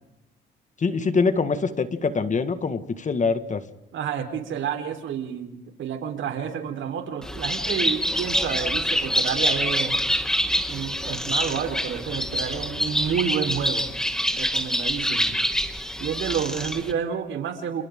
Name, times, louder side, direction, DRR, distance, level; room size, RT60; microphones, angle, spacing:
voice 1, 0.8-3.6, left 4 dB, 40° left, 10 dB, 1.9 m, -24 dB
voice 2, 3.9-10.0 10.7-13.9 14.3-15.4 16.0-17.8, right 8 dB, 75° right, 5 dB, 4.2 m, -29 dB
Bird, 7.2-16.9, equal, 5° left, 2.4 m, -26 dB
29.5 x 29.5 x 3.8 m, 0.89 s
cardioid pair, 90°, 20 cm